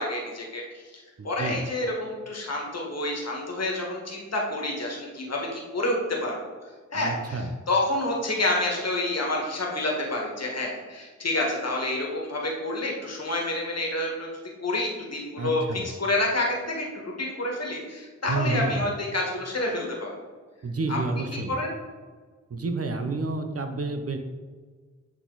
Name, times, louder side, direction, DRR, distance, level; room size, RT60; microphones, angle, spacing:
voice 1, 0.0-6.4 6.9-14.3 14.6-20.2 20.9-21.2 21.5-21.7, left 2 dB, 55° left, -1 dB, 1.7 m, -28 dB
voice 2, 1.2-1.6 6.9-7.5 15.4-15.9 18.3-18.8 20.6-21.5 22.5-24.2, right 3 dB, 50° right, 6 dB, 0.8 m, -29 dB
8.8 x 4.0 x 4.0 m, 1.4 s
wide cardioid pair, 70°, 30 cm